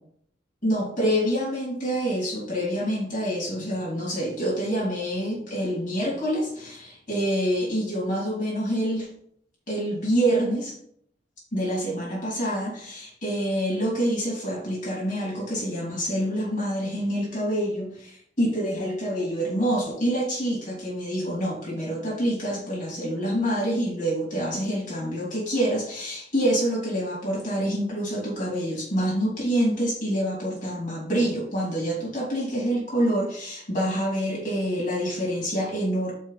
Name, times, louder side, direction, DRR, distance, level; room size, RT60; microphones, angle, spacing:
voice 1, 0.6-9.1 9.7-10.7 11.5-36.1, equal, 45° left, -5 dB, 2.7 m, -26 dB
5.3 x 4.6 x 5.6 m, 0.66 s
head